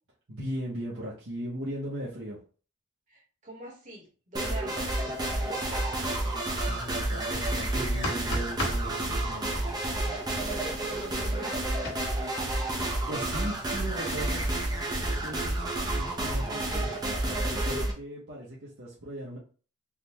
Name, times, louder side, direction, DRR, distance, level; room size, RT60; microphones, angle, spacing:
voice 1, 0.3-2.4 6.6-9.7 12.8-17.0 17.3-19.4, right 1 dB, 60° right, -6 dB, 0.9 m, -38 dB
voice 2, 3.1-4.9 5.3-5.9 10.4-11.6, right 1 dB, 35° right, -2 dB, 1.3 m, -43 dB
sound 1, 4.3-17.9, right 1 dB, 20° right, 0.6 m, -30 dB
sound 2, 7.8-8.8 11.8-11.9, left 1 dB, 55° left, 1.1 m, -32 dB
3.6 x 2.2 x 2.9 m, 0.38 s
head